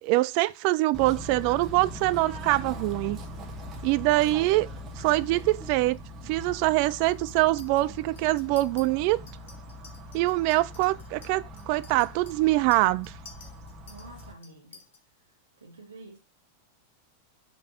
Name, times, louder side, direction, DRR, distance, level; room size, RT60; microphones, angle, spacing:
voice 1, 0.0-3.2 3.8-4.7 5.0-6.0 6.3-9.2 10.1-13.1, right 18 dB, 45° right, 0.4 m, -24 dB
Bird / Train, 0.9-14.3, equal, 30° right, 1.3 m, -41 dB
Chink clink, 7.3-7.8 8.2-8.8 9.3-15.0, left 4 dB, 60° left, 1.7 m, -52 dB
voice 2, 13.8-14.8 15.6-16.2, right 2 dB, 70° right, 1.7 m, -48 dB
5.5 x 3.3 x 5.6 m
figure-of-eight pair, 90°, 0 cm